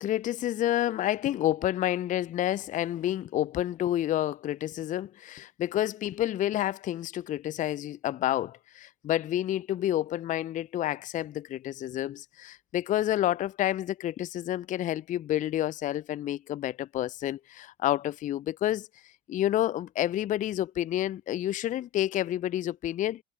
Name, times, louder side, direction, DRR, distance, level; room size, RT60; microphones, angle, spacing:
voice 1, 0.0-18.9 19.3-23.2, left 13 dB, 25° left, 0.5 m, -29 dB
figure-of-eight pair, 70°, 31 cm